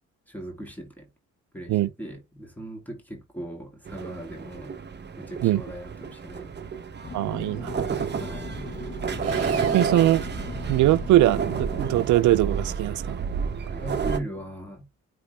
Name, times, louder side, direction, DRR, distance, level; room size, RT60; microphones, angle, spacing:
voice 1, 0.3-1.1 1.5-4.8 5.2-6.5 8.2-8.7 13.7-14.9, right 1 dB, 5° left, 2.6 m, -39 dB
sound 1, 3.9-14.2, right 6 dB, 35° right, 0.9 m, -31 dB
sound 2, 7.0-12.0, left 6 dB, 25° left, 0.4 m, -39 dB
voice 2, 7.1-7.8 9.7-10.2 10.7-13.2, right 14 dB, 75° right, 0.6 m, -21 dB
Sawing, 9.2-11.1, right 7 dB, 50° right, 1.2 m, -42 dB
9.6 x 3.2 x 3.4 m
cardioid pair, 90°, 30 cm